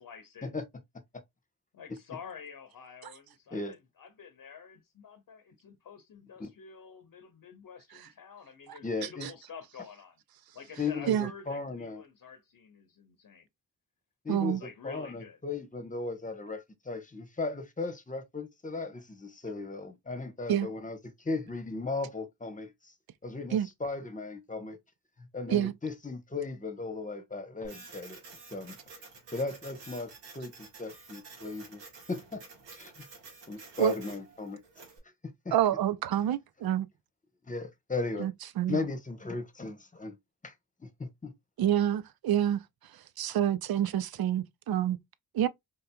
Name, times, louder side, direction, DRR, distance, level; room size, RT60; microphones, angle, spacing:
voice 1, 0.0-0.5 1.7-10.2 10.5-13.5 14.6-15.4, left 6 dB, 50° left, 0.8 m, -49 dB
voice 2, 8.8-9.3 10.8-12.0 14.2-14.6 14.8-22.9 23.2-24.8 25.3-28.2 28.5-28.8 29.3-31.8 32.1-32.4 32.8-32.9 33.5-34.6 35.4-35.6 37.5-38.3 38.7-40.1 40.4-40.5 40.8-41.3, left 3 dB, 20° left, 1.0 m, -36 dB
voice 3, 14.3-14.6 20.5-20.7 23.5-23.7 25.5-25.7 33.8-33.9 35.5-36.9 38.2-38.8 41.6-42.6 43.2-45.0 45.3-45.5, right 11 dB, 60° right, 0.5 m, -27 dB
Printer, 27.6-35.0, right 4 dB, 90° right, 1.3 m, -50 dB
3.7 x 2.7 x 2.2 m
supercardioid pair, 45°, 41 cm